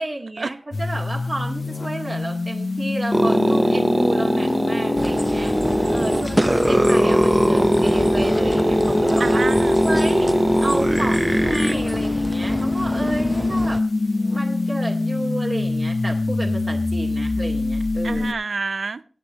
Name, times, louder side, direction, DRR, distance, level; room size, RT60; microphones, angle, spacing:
voice 1, 0.0-9.4 9.8-10.3 10.6-13.8 14.3-18.3, right 2 dB, 55° right, 1.9 m, -31 dB
sound 1, 0.7-18.3, left 3 dB, 65° left, 0.8 m, -25 dB
sound 2, 3.1-11.7, right 1 dB, 20° right, 0.5 m, -20 dB
sound 3, 5.0-13.8, left 1 dB, 10° left, 0.8 m, -30 dB
voice 2, 6.0-6.8 9.2-9.7 13.3-13.7 18.0-19.0, right 4 dB, 85° right, 0.5 m, -30 dB
24.0 x 8.5 x 3.1 m
wide cardioid pair, 70°, 0 cm